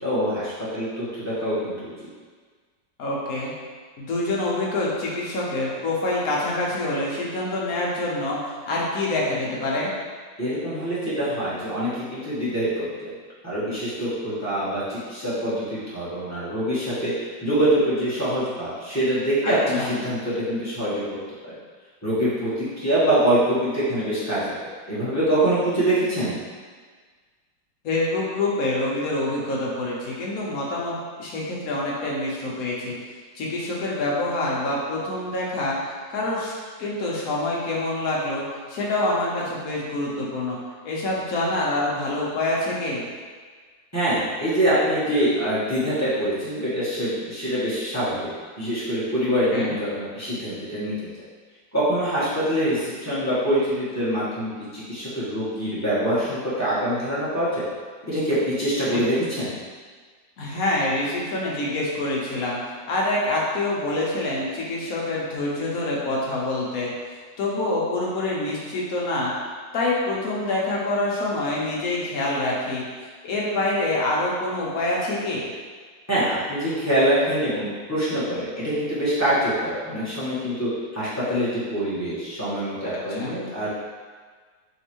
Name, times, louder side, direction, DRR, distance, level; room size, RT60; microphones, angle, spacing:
voice 1, 0.0-1.9 10.4-12.9 13.4-21.0 21.4-21.5 22.0-26.3 43.9-50.9 51.7-57.6 58.1-59.5 76.1-83.7, right 1 dB, 15° left, -12 dB, 0.5 m, -24 dB
voice 2, 3.0-3.5 4.0-8.4 8.7-9.9 19.4-19.9 27.8-32.9 33.3-35.8 36.1-36.5 36.8-40.6 40.8-43.0 49.5-49.7 58.9-59.0 60.4-66.9 67.4-69.3 69.7-72.8 73.2-75.4 83.1-83.4, left 2 dB, 65° left, -4 dB, 1.0 m, -26 dB
3.5 x 3.1 x 2.9 m, 1.5 s
omnidirectional pair, 2.0 m